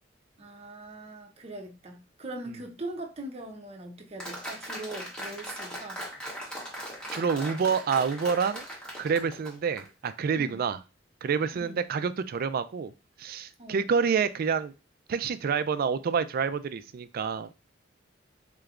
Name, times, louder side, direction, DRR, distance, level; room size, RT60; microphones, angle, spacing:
voice 1, 0.4-6.1 10.4-10.6 11.5-11.8 13.6-13.9, right 1 dB, 35° right, 0.7 m, -41 dB
Applause, 4.2-10.1, equal, 5° left, 1.3 m, -39 dB
voice 2, 7.1-8.6 9.0-10.8 11.2-12.9 13.2-14.7 15.1-17.7, right 6 dB, 50° right, 0.3 m, -28 dB
3.8 x 3.3 x 2.4 m
head